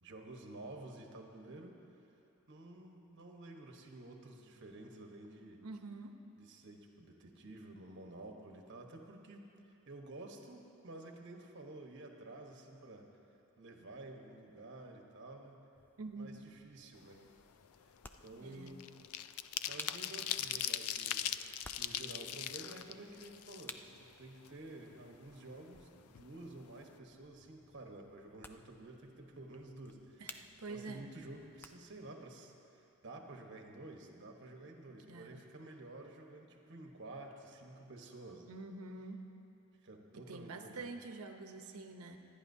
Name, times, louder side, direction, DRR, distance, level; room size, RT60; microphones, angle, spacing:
voice 1, 0.0-1.8 2.5-5.6 6.4-9.5 9.9-13.1 13.6-15.6 16.2-17.2 18.2-18.9 19.7-21.3 21.8-30.4 30.7-38.5 39.8-40.9, right 2 dB, 55° right, 2 dB, 1.2 m, -51 dB
voice 2, 5.6-6.2 16.0-16.3 18.4-18.7 30.2-31.0 34.9-35.4 38.5-39.2 40.1-42.2, right 3 dB, 90° right, 6 dB, 0.8 m, -47 dB
sound 1, 15.7-32.1, left 2 dB, 10° left, 0.3 m, -57 dB
sound 2, 17.1-17.3 17.7-24.1 24.5-24.6 24.9-25.8 26.1-26.3 26.6-26.9, left 11 dB, 85° left, 0.4 m, -40 dB
25.0 x 10.0 x 2.7 m, 2.9 s
head